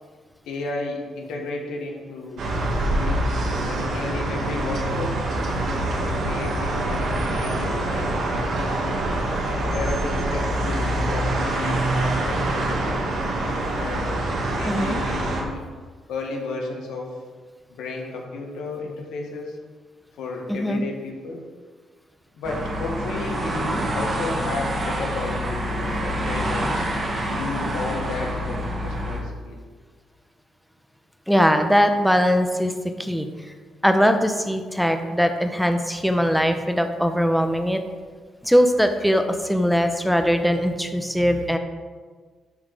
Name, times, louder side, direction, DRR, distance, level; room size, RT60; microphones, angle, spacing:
voice 1, 0.4-3.3 3.7-5.2 6.0-8.4 9.6-13.0 13.8-15.7 16.1-17.2 17.7-19.6 20.2-21.4 22.3-26.9 27.3-29.6, left 3 dB, 80° left, 0 dB, 1.7 m, -33 dB
sound 1, 2.4-15.4, right 1 dB, 65° right, 1.8 m, -25 dB
voice 2, 14.6-15.0 20.5-20.8 31.3-32.7 33.0-33.3 33.8-37.8 38.4-41.6, equal, ahead, 6 dB, 0.9 m, -20 dB
sound 2, 22.4-29.2, equal, 45° right, 1.8 m, -27 dB
11.5 x 4.1 x 4.9 m, 1.5 s
cardioid pair, 90°, 0 cm